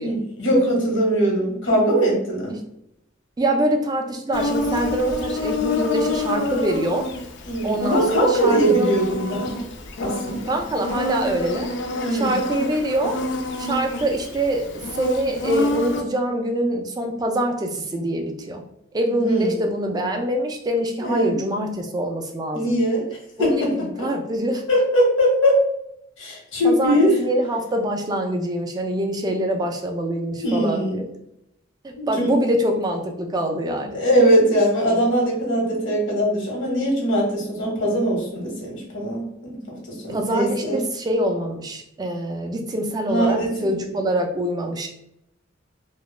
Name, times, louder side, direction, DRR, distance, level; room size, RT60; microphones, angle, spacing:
voice 1, 0.0-2.5 7.5-9.5 10.0-10.6 12.0-12.4 19.1-19.5 21.0-21.4 22.5-24.1 24.7-25.6 26.2-27.2 30.4-30.9 32.0-32.3 33.9-40.8 43.1-43.8, right 1 dB, 90° left, -1 dB, 0.9 m, -21 dB
voice 2, 3.4-7.1 7.6-8.9 10.5-11.7 12.1-13.2 13.6-18.6 18.9-22.8 23.4-24.6 26.6-31.1 31.8-34.0 40.1-44.9, right 1 dB, 20° right, 3 dB, 0.3 m, -24 dB
Insect, 4.3-16.0, left 2 dB, 65° left, 0.4 m, -28 dB
2.2 x 2.0 x 3.0 m, 0.79 s
head